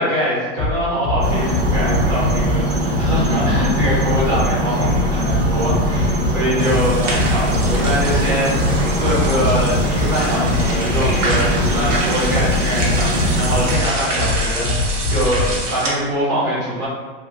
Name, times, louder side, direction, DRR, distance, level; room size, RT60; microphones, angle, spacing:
voice 1, 0.0-16.9, equal, 10° right, -9 dB, 0.5 m, -23 dB
sound 1, 0.6-15.6, left 2 dB, 35° left, 0.6 m, -22 dB
sound 2, 1.2-13.8, right 1 dB, 60° right, 0.8 m, -22 dB
sound 3, 6.6-15.9, right 2 dB, 85° right, 1.0 m, -27 dB
2.6 x 2.6 x 2.9 m, 1.4 s
supercardioid pair, 170°, 36 cm